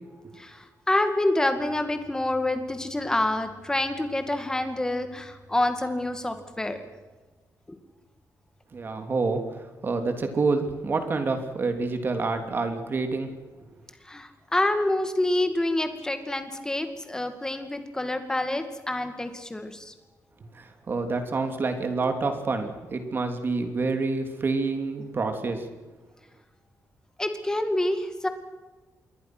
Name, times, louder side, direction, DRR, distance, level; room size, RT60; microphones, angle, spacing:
voice 1, 0.3-6.8 7.7-7.8 14.0-19.9 27.2-28.3, left 1 dB, 10° left, 7 dB, 2.2 m, -27 dB
voice 2, 8.7-13.3 13.6-13.7 20.5-25.7, right 3 dB, 35° right, 6 dB, 3.1 m, -28 dB
27.0 x 22.5 x 6.2 m, 1.3 s
wide cardioid pair, 180°, 6 cm